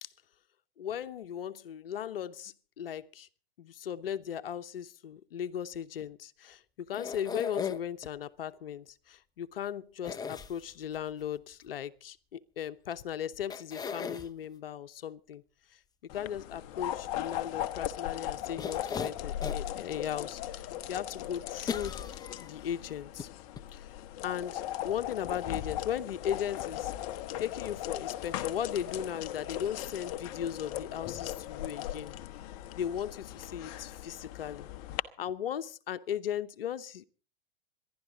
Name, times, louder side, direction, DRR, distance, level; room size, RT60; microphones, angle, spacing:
voice 1, 0.8-3.3 3.6-6.6 6.9-15.4 16.1-22.0 22.4-23.3 23.7-24.0 24.2-26.9 27.4-32.1 32.8-34.7 35.2-37.0, left 9 dB, 70° left, 0.9 m, -37 dB
sound 1, 6.9-8.1 10.0-11.0 12.9-13.0 13.5-14.3 18.6-19.7 20.2-20.3 21.7-22.7 23.2-23.3 23.6-23.7, left 6 dB, 15° left, 0.8 m, -37 dB
sound 2, 16.1-35.0, left 12 dB, 40° left, 1.0 m, -38 dB
26.5 x 11.5 x 3.9 m
hypercardioid pair, 110°, 30 cm